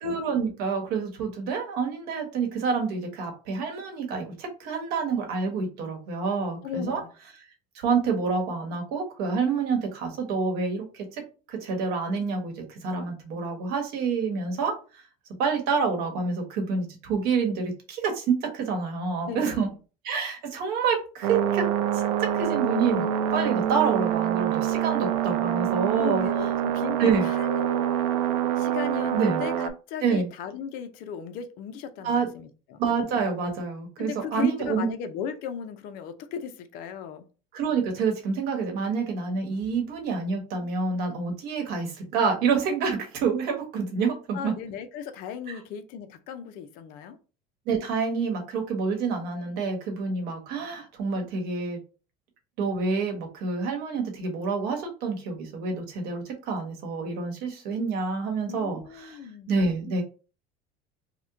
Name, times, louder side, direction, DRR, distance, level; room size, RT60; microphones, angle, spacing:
voice 1, 0.0-7.0 7.7-11.2 11.5-15.0 15.4-19.7 20.0-21.7 21.9-26.3 27.0-27.3 29.1-29.4 30.0-30.3 32.0-32.3 32.8-34.9 37.5-44.5 45.5-45.6 47.7-51.8 52.6-59.2 59.5-60.0, right 5 dB, 60° right, 3 dB, 1.0 m, -28 dB
voice 2, 6.6-7.1 19.2-19.7 25.9-27.9 28.6-32.8 34.0-37.3 44.3-47.2 58.5-59.6, left 7 dB, 55° left, 9 dB, 0.4 m, -36 dB
sound 1, 21.2-29.7, right 10 dB, 90° right, 0.4 m, -26 dB
2.9 x 2.1 x 3.5 m, 0.35 s
cardioid pair, 155°, 18 cm